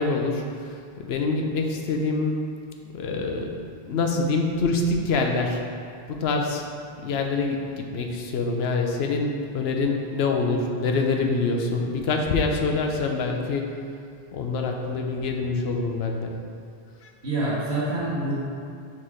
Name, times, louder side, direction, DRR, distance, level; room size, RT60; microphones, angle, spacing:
voice 1, 0.0-2.4 2.9-5.6 6.1-6.6 7.0-13.7 14.3-16.4 17.0-17.1, left 3 dB, 75° left, 2 dB, 0.9 m, -25 dB
voice 2, 17.2-18.3, right 2 dB, 75° right, -9 dB, 1.6 m, -26 dB
4.7 x 4.3 x 4.8 m, 2.4 s
omnidirectional pair, 1.1 m